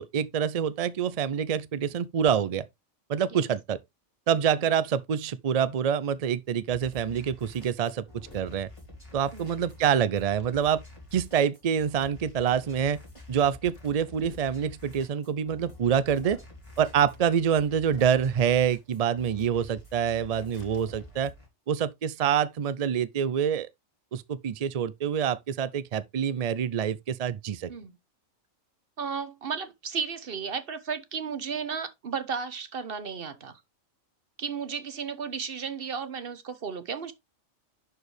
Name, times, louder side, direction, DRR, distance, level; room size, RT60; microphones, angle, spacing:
voice 1, 0.0-2.6 3.1-3.8 4.3-8.1 8.3-8.7 9.1-10.8 11.1-13.0 13.3-16.4 16.8-21.3 21.7-23.7 24.1-27.7, right 8 dB, 70° right, 0.3 m, -26 dB
sound 1, 6.7-21.5, left 1 dB, 25° left, 3.8 m, -48 dB
sound 2, 8.2-8.6 10.4-10.7 12.3-12.8 13.7-14.5 16.0-16.5 17.9-18.4 20.3-21.1, left 3 dB, 45° left, 1.7 m, -51 dB
voice 2, 29.0-33.6 34.4-37.1, right 6 dB, 50° right, 1.2 m, -34 dB
11.0 x 4.7 x 3.3 m
omnidirectional pair, 1.4 m